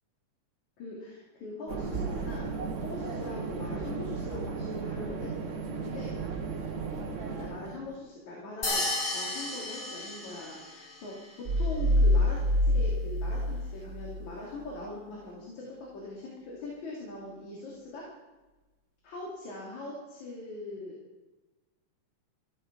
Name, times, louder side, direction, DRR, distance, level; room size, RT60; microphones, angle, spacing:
voice 1, 0.8-2.5 2.8-5.3 5.8-6.2 7.3-18.1 19.0-21.0, left 2 dB, 75° left, -3 dB, 4.1 m, -42 dB
sound 1, 1.7-7.9, right 4 dB, 40° right, 1.1 m, -35 dB
sound 2, 8.6-10.9, left 2 dB, 60° left, 0.5 m, -33 dB
sound 3, 11.5-14.2, left 1 dB, 75° right, 0.6 m, -25 dB
15.0 x 13.5 x 5.2 m, 1.2 s
omnidirectional pair, 3.3 m